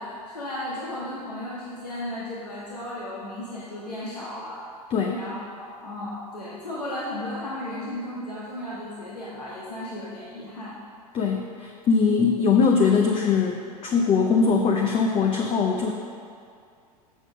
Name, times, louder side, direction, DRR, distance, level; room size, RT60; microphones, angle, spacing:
voice 1, 0.0-4.6 5.1-10.8, left 1 dB, 85° left, -7 dB, 1.4 m, -35 dB
voice 2, 4.9-5.2 11.1-15.9, left 5 dB, 30° left, 2 dB, 0.7 m, -21 dB
7.4 x 6.8 x 5.9 m, 2.3 s
figure-of-eight pair, 90°, 20 cm